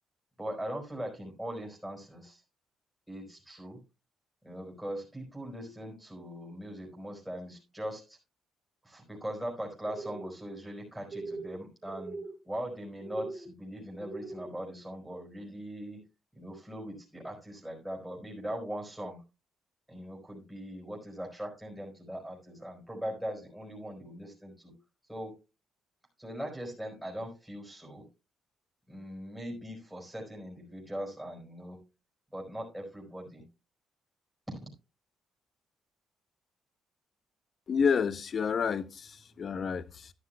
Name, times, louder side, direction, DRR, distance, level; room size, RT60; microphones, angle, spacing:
voice 1, 0.4-2.4 3.1-3.8 4.4-8.2 8.8-16.0 16.3-19.2 19.9-24.7 25.1-25.4 26.2-28.1 28.9-31.9 32.3-33.5 34.6-34.7, equal, 5° right, 4.6 m, -40 dB
sound 1, 9.8-10.3 11.1-11.6 11.8-12.3 13.0-13.5 14.0-14.5, right 3 dB, 60° right, 3.7 m, -40 dB
voice 2, 37.7-40.1, left 6 dB, 50° left, 0.7 m, -29 dB
12.5 x 11.0 x 2.2 m
cardioid pair, 90°, 0 cm